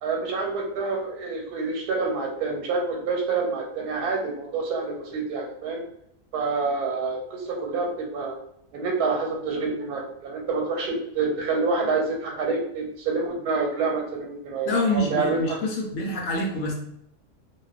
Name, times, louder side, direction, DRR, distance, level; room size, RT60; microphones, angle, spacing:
voice 1, 0.0-5.8 6.3-8.4 8.7-15.6, right 4 dB, 85° right, 0 dB, 1.2 m, -27 dB
voice 2, 14.7-16.7, left 1 dB, 70° left, 0 dB, 0.9 m, -26 dB
2.5 x 2.3 x 2.3 m, 0.73 s
omnidirectional pair, 1.6 m